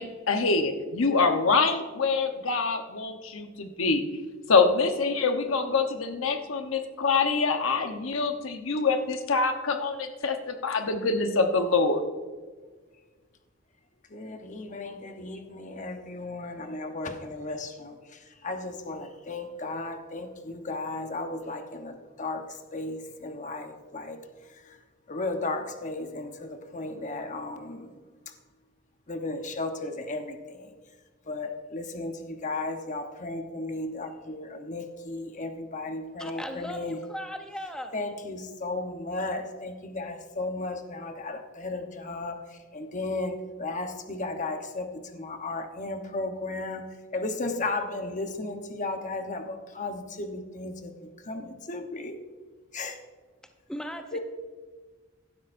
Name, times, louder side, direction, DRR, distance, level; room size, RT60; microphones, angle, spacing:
voice 1, 0.0-4.0 4.5-12.0, left 4 dB, 90° left, 6 dB, 1.0 m, -25 dB
voice 2, 14.1-24.8 25.1-28.0 28.3-28.4 29.1-30.7 31.2-37.0 37.9-52.2 52.7-53.0 54.1-54.2, left 2 dB, 40° left, 6 dB, 1.0 m, -35 dB
voice 3, 36.2-38.0 53.7-54.2, equal, 5° left, 5 dB, 0.7 m, -37 dB
16.0 x 12.0 x 2.6 m, 1.4 s
head